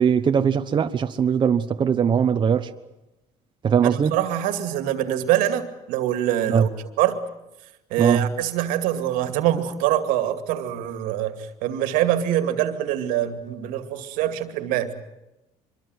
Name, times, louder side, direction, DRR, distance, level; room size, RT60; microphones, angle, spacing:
voice 1, 0.0-2.7 3.6-4.1 6.5-6.7 8.0-8.3, right 7 dB, 35° right, 1.1 m, -20 dB
voice 2, 3.8-6.7 7.0-7.2 7.9-14.9, right 12 dB, 85° right, 2.4 m, -24 dB
25.0 x 23.0 x 7.9 m
cardioid pair, 110°, 14 cm